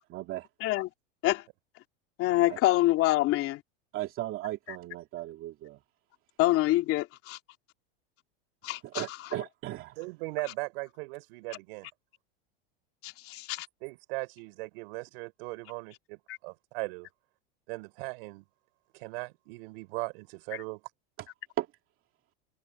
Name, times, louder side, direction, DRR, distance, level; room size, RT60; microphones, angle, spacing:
voice 1, 0.1-0.5 2.5-2.6 3.9-5.8 8.8-10.0 21.6-21.7, right 15 dB, 40° right, 2.6 m, -36 dB
voice 2, 2.2-3.6 4.7-4.8 6.4-7.4 8.6-9.2 13.0-13.7 16.3-16.4, left 17 dB, 45° left, 3.0 m, -26 dB
voice 3, 10.0-11.9 13.8-17.1 17.7-18.4 18.9-20.8, right 28 dB, 65° right, 6.2 m, -38 dB
supercardioid pair, 125°, 31 cm